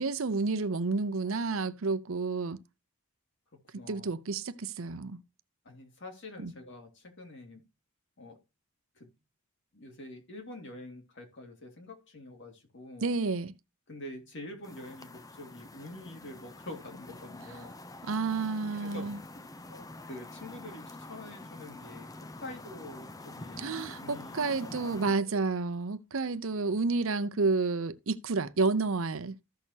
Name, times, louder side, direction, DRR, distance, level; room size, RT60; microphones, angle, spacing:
voice 1, 0.0-2.6 3.9-5.2 6.4-6.5 13.0-13.5 18.1-19.2 23.6-29.3, right 3 dB, 65° right, 0.7 m, -30 dB
voice 2, 3.5-4.1 5.6-7.6 8.2-8.4 9.0-9.1 9.7-13.1 13.9-18.3 18.7-25.4 26.5-26.7 27.0-27.1, left 1 dB, 55° left, 2.4 m, -47 dB
sound 1, 14.6-25.2, left 2 dB, 15° left, 0.5 m, -46 dB
14.5 x 6.4 x 2.8 m
head